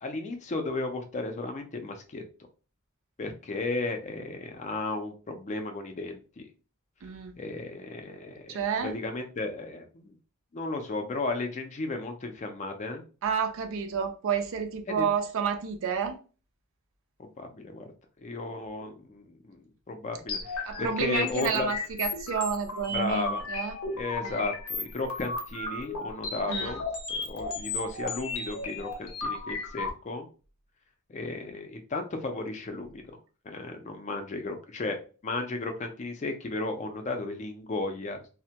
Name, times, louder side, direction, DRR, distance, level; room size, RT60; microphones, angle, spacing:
voice 1, 0.0-2.2 3.2-6.5 7.4-10.2 10.5-13.0 14.9-15.1 17.2-17.9 18.2-21.7 22.9-23.5 23.9-30.3 31.1-33.0 33.4-35.0 35.2-38.2, left 2 dB, 35° left, 0.4 m, -34 dB
voice 2, 7.0-7.4 8.5-9.0 13.2-16.2 20.6-23.7 24.2-24.5 26.5-26.8, right 6 dB, 65° right, 0.4 m, -30 dB
sound 1, 20.3-29.9, left 3 dB, 75° left, 0.6 m, -35 dB
2.1 x 2.1 x 2.7 m
head